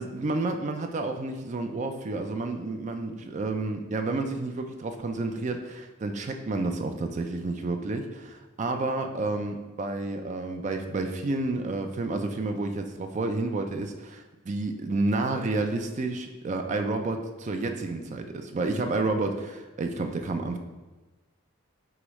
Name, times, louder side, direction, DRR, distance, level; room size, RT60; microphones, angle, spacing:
voice 1, 0.0-20.6, right 2 dB, 35° right, 5 dB, 0.3 m, -30 dB
4.8 x 3.0 x 3.1 m, 1.2 s
head